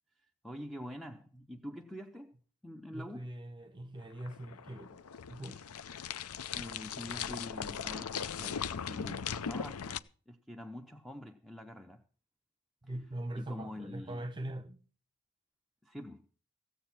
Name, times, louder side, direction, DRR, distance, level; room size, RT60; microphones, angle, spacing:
voice 1, 0.4-2.3 2.6-3.3 6.6-10.0 10.3-12.0 13.4-14.3 15.8-16.3, left 1 dB, ahead, 0.6 m, -46 dB
voice 2, 2.9-5.0 5.3-5.6 12.8-14.8, right 1 dB, 20° right, 1.2 m, -42 dB
sound 1, 4.0-10.0, left 7 dB, 80° left, 0.6 m, -39 dB
15.5 x 8.0 x 5.9 m
head